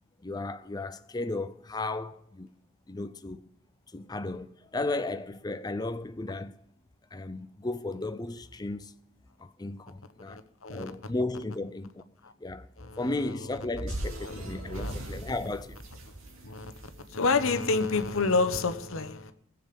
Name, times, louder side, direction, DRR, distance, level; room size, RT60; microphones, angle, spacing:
voice 1, 0.2-2.5 2.9-3.4 3.9-6.5 7.1-8.9 9.4-10.4 10.7-12.0 12.4-12.7 13.0-15.8, left 2 dB, 20° left, 0.5 m, -34 dB
voice 2, 12.8-13.6 14.2-14.9 16.4-16.7 17.1-19.3, left 3 dB, 70° left, 1.0 m, -29 dB
sound 1, 13.7-18.1, right 1 dB, 70° right, 2.5 m, -39 dB
18.0 x 7.5 x 5.2 m
head